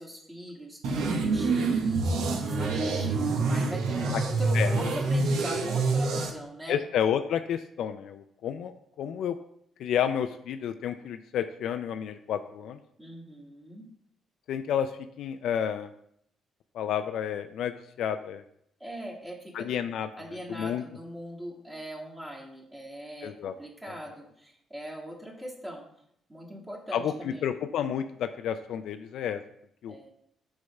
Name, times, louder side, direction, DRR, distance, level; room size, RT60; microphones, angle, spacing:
voice 1, 0.0-6.8 13.0-13.8 18.8-19.7 20.1-25.9 26.3-27.5 29.9-30.1, equal, 15° right, -6 dB, 1.9 m, -41 dB
sound 1, 0.8-6.3, right 3 dB, 85° right, 0.9 m, -26 dB
voice 2, 6.7-9.4 9.8-12.8 14.5-14.9 15.2-15.9 16.7-18.4 19.5-20.8 23.2-23.5 26.9-29.4 29.8-30.0, left 9 dB, 75° left, 8 dB, 0.4 m, -30 dB
6.5 x 3.5 x 5.3 m, 0.70 s
cardioid pair, 90°, 0 cm